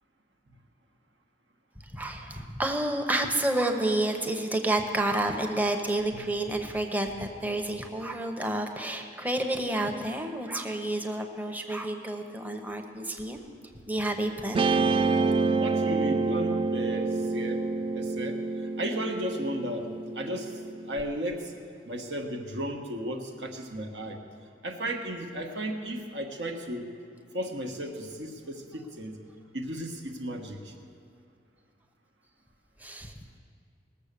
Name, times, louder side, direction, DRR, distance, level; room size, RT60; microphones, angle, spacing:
voice 1, 1.9-13.4 13.9-14.6 32.8-33.1, right 1 dB, 10° right, 4 dB, 0.9 m, -29 dB
Guitar, 14.5-21.0, right 4 dB, 30° right, 0.3 m, -28 dB
voice 2, 15.6-17.6 17.9-18.4 18.8-20.5 20.9-21.5 21.8-24.2 24.6-26.8 27.3-29.1 29.5-30.7, equal, 70° right, 4 dB, 1.3 m, -34 dB
19.0 x 7.1 x 6.7 m, 2.3 s
head